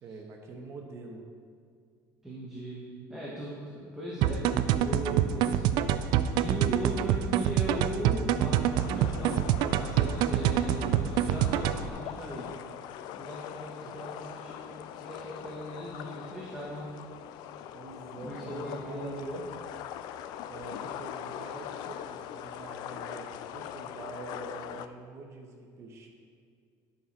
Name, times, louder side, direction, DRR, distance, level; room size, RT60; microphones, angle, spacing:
voice 1, 0.0-1.2 13.8-13.9 17.7-19.6 20.5-26.1, right 2 dB, 35° right, 1 dB, 1.2 m, -45 dB
voice 2, 2.2-5.8 6.3-9.5 9.7-12.5 13.2-17.0 18.2-19.5, equal, 5° right, -6 dB, 1.2 m, -38 dB
sound 1, 4.2-11.9, right 10 dB, 65° right, 0.4 m, -26 dB
sound 2, 8.8-24.9, left 10 dB, 65° left, 0.4 m, -42 dB
11.5 x 6.2 x 4.2 m, 2.2 s
cardioid pair, 160°, 8 cm